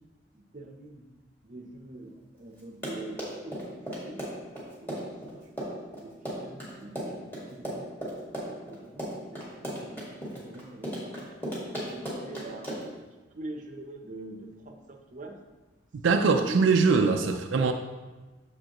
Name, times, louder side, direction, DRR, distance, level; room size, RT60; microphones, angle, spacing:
voice 1, 0.3-1.0 1.4-3.7 4.0-4.2 4.8-7.9 8.3-11.3 11.8-12.9 13.3-15.4 16.1-16.6 17.0-17.4, right 2 dB, 40° right, 3 dB, 0.7 m, -44 dB
Run, 2.6-13.0, equal, 10° left, 1.8 m, -36 dB
voice 2, 16.0-17.7, right 4 dB, 75° right, 4 dB, 0.4 m, -22 dB
8.8 x 6.7 x 2.9 m, 1.2 s
head